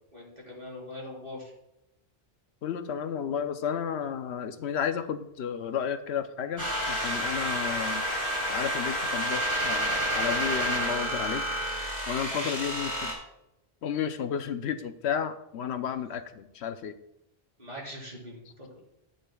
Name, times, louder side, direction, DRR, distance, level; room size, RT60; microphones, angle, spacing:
voice 1, 0.1-1.5 12.3-12.6 17.6-18.8, left 1 dB, 40° right, -5 dB, 4.2 m, -42 dB
voice 2, 2.6-8.0 8.5-11.4 12.1-13.1 13.8-16.9, left 8 dB, 85° left, 9 dB, 0.9 m, -32 dB
sound 1, 6.6-13.1, equal, 15° right, 2.5 m, -29 dB
13.5 x 8.8 x 2.3 m, 0.84 s
omnidirectional pair, 1.1 m